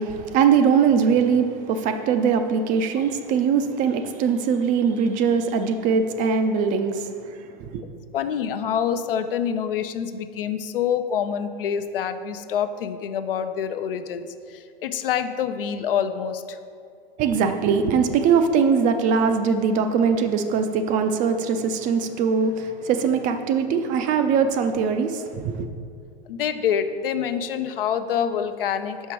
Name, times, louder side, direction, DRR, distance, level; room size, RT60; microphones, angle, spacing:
voice 1, 0.0-7.8 17.2-25.7, right 6 dB, 30° right, 8 dB, 0.4 m, -21 dB
voice 2, 8.1-16.6 26.3-29.1, left 8 dB, 70° left, 10 dB, 0.5 m, -26 dB
5.8 x 5.4 x 4.6 m, 2.3 s
hypercardioid pair, 100°, 29 cm